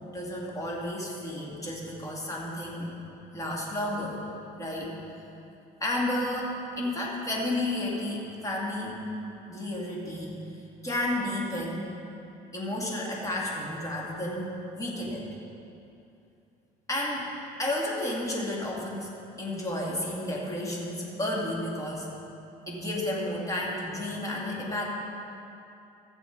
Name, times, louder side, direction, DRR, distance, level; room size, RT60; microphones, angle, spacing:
voice 1, 0.1-2.9 3.3-4.2 4.5-4.9 5.8-9.0 9.5-10.4 10.8-11.9 12.5-15.3 16.9-17.3 17.6-19.1 19.4-22.1 22.7-24.8, left 1 dB, 20° left, -4 dB, 2.4 m, -32 dB
15.0 x 7.8 x 4.0 m, 2.7 s
cardioid pair, 110°, 17 cm